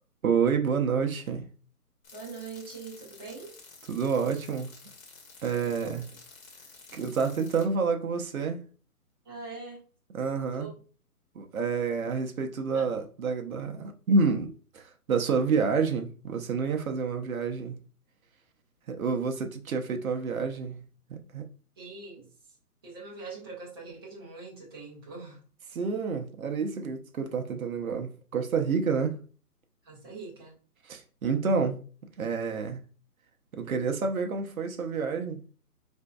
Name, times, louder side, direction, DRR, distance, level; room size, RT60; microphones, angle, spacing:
voice 1, 0.2-1.5 3.9-4.7 5.4-6.0 6.9-8.6 10.1-10.7 11.3-17.8 18.9-21.4 25.7-29.2 30.8-31.8 32.2-32.8 33.5-35.4, right 5 dB, 60° right, 0.7 m, -28 dB
sound 1, 2.0-7.7, left 4 dB, 60° left, 1.1 m, -51 dB
voice 2, 2.1-3.5 5.6-6.2 6.9-7.0 9.2-9.8 10.6-10.7 12.7-12.9 21.8-22.3 22.8-25.4 29.8-30.6, right 4 dB, 15° right, 0.5 m, -42 dB
4.3 x 2.6 x 2.2 m
figure-of-eight pair, 145°, 46 cm